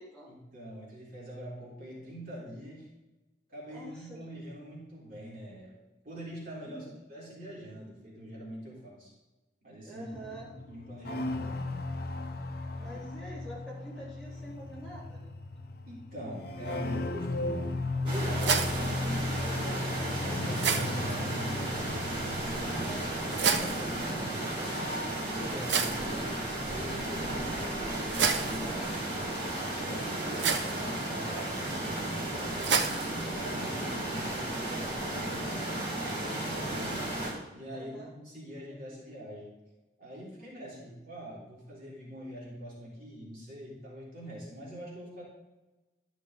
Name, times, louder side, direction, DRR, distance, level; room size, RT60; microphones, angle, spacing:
voice 1, 0.3-2.9 3.5-5.8 6.0-9.1 9.6-10.1 10.7-11.7 12.8-13.0 15.9-22.8 23.3-24.8 25.2-26.4 26.7-28.7 29.8-32.9 33.2-37.1 37.5-39.5 40.0-45.2, equal, 50° right, -6 dB, 3.6 m, -44 dB
voice 2, 3.7-4.2 6.6-6.9 9.8-10.5 12.7-15.3 22.6-23.2 28.6-28.9 37.7-38.1 40.6-40.9, right 1 dB, 5° left, -9 dB, 3.3 m, -46 dB
sound 1, 10.1-25.9 26.2-27.0, left 2 dB, 55° left, 0.6 m, -37 dB
sound 2, 17.4-34.4, right 6 dB, 75° right, 0.8 m, -35 dB
sound 3, 18.1-37.3, right 1 dB, 30° right, 2.8 m, -34 dB
12.0 x 6.4 x 3.8 m, 1.1 s
head